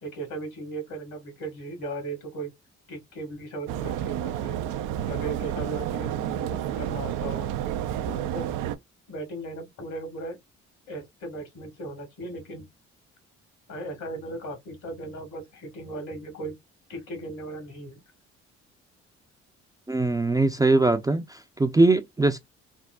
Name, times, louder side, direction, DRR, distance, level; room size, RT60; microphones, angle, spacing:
voice 1, 0.0-2.5 2.9-4.6 5.1-7.5 8.1-8.5 9.1-10.4 10.9-12.7 13.7-16.6 16.9-18.0, right 2 dB, 65° left, 1.9 m, -37 dB
sound 1, 3.7-8.8, right 11 dB, 75° right, 0.5 m, -30 dB
voice 2, 19.9-22.4, right 2 dB, 10° right, 0.5 m, -21 dB
3.5 x 2.0 x 2.3 m
hypercardioid pair, 55°, 32 cm